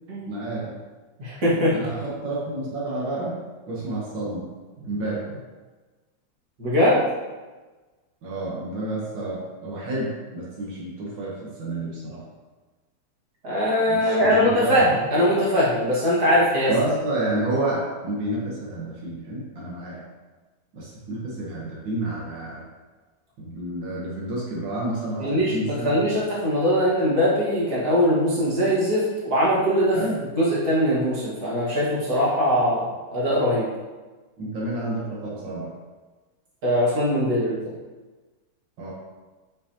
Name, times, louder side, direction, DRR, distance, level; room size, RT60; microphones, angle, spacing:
voice 1, 0.3-0.8 1.7-3.4 3.7-4.5 4.8-5.4 8.2-12.2 13.9-14.9 16.7-20.0 20.7-22.7 23.4-26.0 29.9-30.2 33.5-33.6 34.4-35.7 38.8-38.9, right 2 dB, 85° right, -5 dB, 1.9 m, -30 dB
voice 2, 1.2-1.7 6.6-7.0 13.4-16.7 25.2-30.0 30.4-33.7 36.6-37.6, equal, 55° right, -7 dB, 2.3 m, -21 dB
6.2 x 6.0 x 2.9 m, 1.3 s
omnidirectional pair, 2.0 m